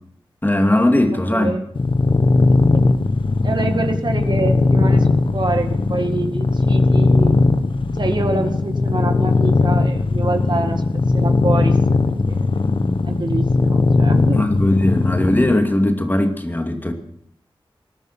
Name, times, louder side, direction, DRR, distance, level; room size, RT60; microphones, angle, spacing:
voice 1, 0.4-1.6 14.3-16.9, left 1 dB, 20° left, 2.6 m, -18 dB
voice 2, 1.3-1.7 2.7-2.8 3.4-7.4 8.0-10.8 11.1-12.0 12.3-12.5 13.0-14.4, right 2 dB, 55° right, 1.9 m, -25 dB
sound 1, 1.8-15.6, left 3 dB, 65° left, 1.3 m, -18 dB
20.0 x 11.5 x 6.0 m
wide cardioid pair, 70°, 9 cm